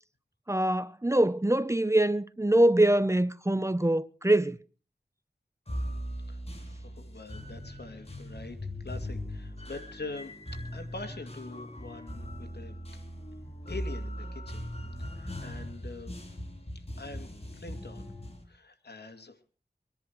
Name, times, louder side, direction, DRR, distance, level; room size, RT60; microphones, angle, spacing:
voice 1, 0.5-4.6, right 1 dB, 15° right, 0.8 m, -24 dB
sound 1, 5.7-18.4, equal, 35° left, 3.8 m, -39 dB
voice 2, 6.3-8.6 8.8-12.7 13.7-14.7 15.0-16.2 17.0-18.1 18.5-19.4, left 3 dB, 80° left, 2.3 m, -44 dB
24.0 x 10.5 x 4.6 m
wide cardioid pair, 50°, 17 cm